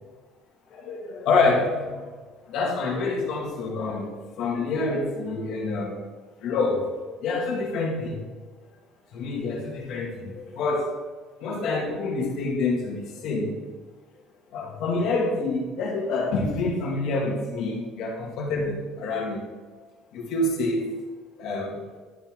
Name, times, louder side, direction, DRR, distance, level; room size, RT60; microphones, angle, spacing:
voice 1, 0.7-2.1 2.5-6.0 6.4-6.9 7.2-8.2 9.1-10.9 11.4-13.6 14.5-19.4 20.1-21.0 21.4-21.8, left 3 dB, 60° left, -1 dB, 2.1 m, -27 dB
11.5 x 5.6 x 3.8 m, 1.4 s
cardioid pair, 160°, 0 cm